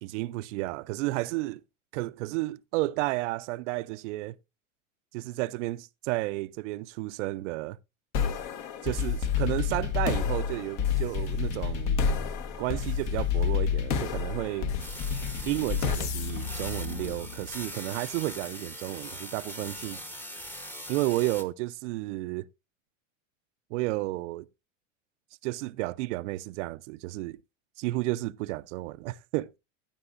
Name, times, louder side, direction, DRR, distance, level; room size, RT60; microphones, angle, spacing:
voice 1, 0.0-1.6 1.9-4.4 5.1-7.8 8.8-12.0 12.6-14.7 15.5-20.0 20.9-22.5 23.7-24.5 25.4-27.4 27.8-29.5, right 19 dB, 65° right, 0.6 m, -32 dB
sound 1, 8.1-17.6, left 7 dB, 55° left, 1.4 m, -29 dB
sound 2, 14.8-21.4, equal, 5° left, 0.9 m, -41 dB
15.5 x 9.0 x 2.4 m
supercardioid pair, 135°, 38 cm